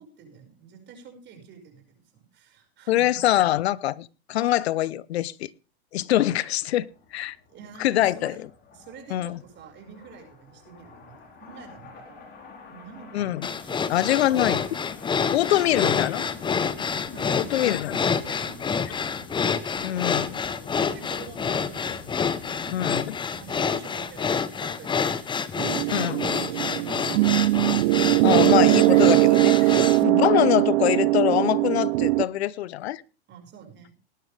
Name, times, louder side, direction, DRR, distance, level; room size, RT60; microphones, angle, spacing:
voice 1, 0.0-3.1 7.5-8.4 8.7-12.4 12.7-13.8 14.3-14.4 15.2-15.7 17.1-17.6 18.1-19.1 19.9-20.1 20.7-22.1 22.5-22.8 23.3-25.9 26.2-27.6 28.4-28.6 29.9-30.2 33.3-33.9, right 6 dB, 35° right, 5.6 m, -46 dB
voice 2, 2.9-5.5 5.9-7.4 7.8-8.4 9.1-9.4 13.1-13.5 13.9-14.6 15.3-16.2 17.3-18.1 19.8-20.4 22.7-23.0 25.9-26.2 28.2-33.0, left 14 dB, 80° left, 0.8 m, -24 dB
sound 1, 6.7-24.2, left 4 dB, 35° left, 4.3 m, -47 dB
sound 2, 13.4-30.0, left 6 dB, 15° left, 0.9 m, -28 dB
sound 3, 25.6-32.3, right 21 dB, 60° right, 0.6 m, -20 dB
19.0 x 11.0 x 3.4 m
hypercardioid pair, 120°, 31 cm